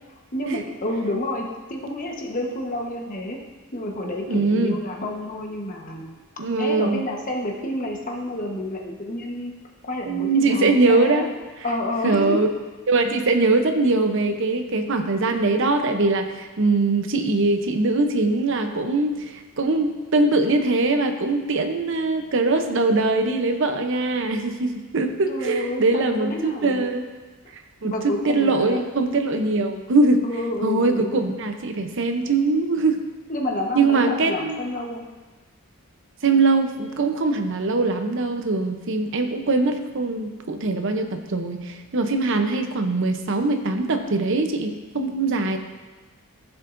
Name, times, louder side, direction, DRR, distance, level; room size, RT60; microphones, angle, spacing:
voice 1, 0.3-3.4 3.7-6.1 6.6-9.5 9.8-11.2 11.6-12.4 25.3-26.9 27.8-28.8 30.2-31.4 33.3-35.0, left 1 dB, 40° left, 0 dB, 1.1 m, -29 dB
voice 2, 4.3-4.8 6.4-7.0 10.1-11.3 12.0-12.5 12.9-27.1 27.8-30.2 30.6-33.0 33.8-34.6 36.2-45.6, right 3 dB, 60° right, 6 dB, 0.7 m, -22 dB
14.5 x 7.2 x 2.6 m, 1.3 s
head